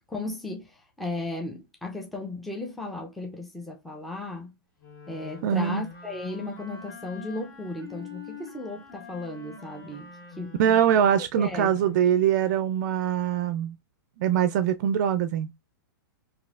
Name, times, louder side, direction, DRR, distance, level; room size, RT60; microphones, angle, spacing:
voice 1, 0.1-4.6 5.1-10.8 11.2-11.8, left 2 dB, ahead, 0.5 m, -35 dB
Wind instrument woodwind instrument, 4.8-12.2, left 5 dB, 60° left, 1.7 m, -45 dB
voice 2, 5.4-5.8 10.6-13.7 14.2-15.5, right 9 dB, 50° right, 0.4 m, -23 dB
3.1 x 2.6 x 2.4 m
hypercardioid pair, 130°, 12 cm